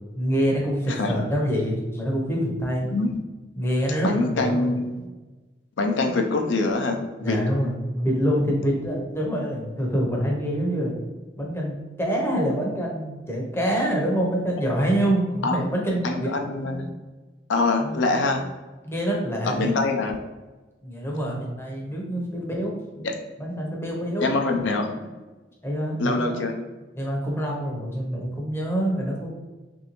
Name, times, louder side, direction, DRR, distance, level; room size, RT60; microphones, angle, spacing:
voice 1, 0.2-2.9 3.6-4.8 7.2-10.9 11.4-16.3 17.8-18.0 18.8-19.7 20.8-23.0 23.4-24.3 25.6-26.4 27.0-29.3, equal, 15° left, -2 dB, 0.6 m, -26 dB
voice 2, 4.0-5.1 5.8-7.4 15.4-15.6 16.0-16.9 17.5-18.4 19.4-20.2 23.0-23.1 24.2-25.0 26.0-26.5, left 3 dB, 80° left, 3 dB, 0.5 m, -24 dB
3.1 x 2.6 x 2.9 m, 1.2 s
head